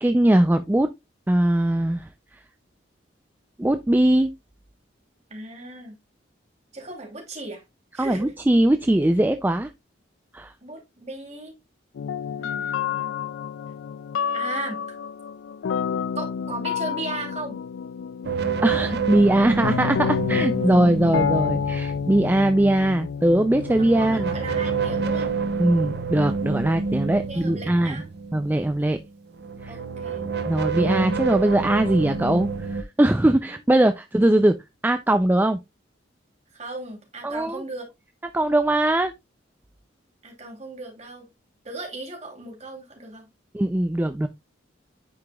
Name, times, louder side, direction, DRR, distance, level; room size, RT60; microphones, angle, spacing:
voice 1, 0.0-0.9 1.3-2.1 3.6-4.3 8.0-9.7 10.3-10.5 18.6-24.3 25.6-28.0 28.3-29.0 29.6-29.7 30.4-34.5 34.8-35.6 37.2-37.6 38.3-39.1 43.5-44.3, right 1 dB, 10° right, 0.3 m, -21 dB
voice 2, 5.3-6.0 6.7-7.6 7.9-8.3 10.6-11.5 12.4-13.2 14.3-15.0 16.2-17.6 23.7-25.4 27.1-28.1 29.7-30.3 33.5-33.8 36.5-37.8 40.2-41.3 41.6-43.3, right 2 dB, 35° right, 2.8 m, -37 dB
sound 1, 12.0-25.3, left 7 dB, 80° left, 0.3 m, -29 dB
sound 2, 18.2-22.4 23.2-29.0 29.3-32.8, right 5 dB, 55° right, 0.6 m, -28 dB
9.5 x 5.0 x 2.3 m
head